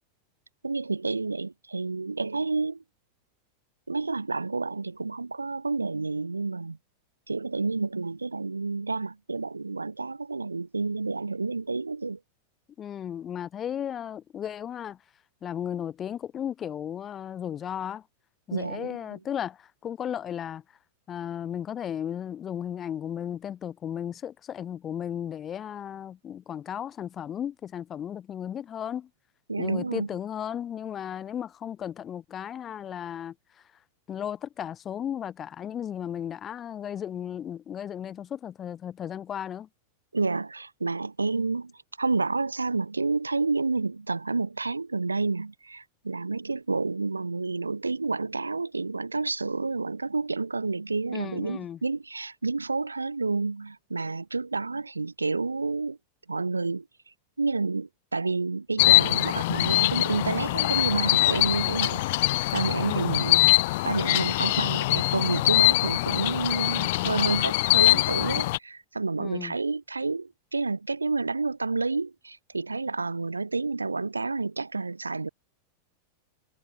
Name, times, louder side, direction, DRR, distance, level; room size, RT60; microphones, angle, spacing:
voice 1, 0.6-2.8 3.9-6.8 7.3-12.2 18.5-19.2 29.5-30.1 40.1-41.7 42.0-56.0 56.3-56.9 57.4-62.2 62.5-63.4 63.8-75.3, right 3 dB, 80° right, 4.9 m, -29 dB
voice 2, 12.8-15.0 15.4-18.0 18.5-20.6 21.1-29.1 29.6-33.3 34.1-39.7 51.1-51.8 62.8-63.1 69.2-69.5, left 9 dB, 25° left, 7.8 m, -35 dB
sound 1, 58.8-68.6, left 19 dB, 50° left, 1.2 m, -23 dB
figure-of-eight pair, 90°, 0 cm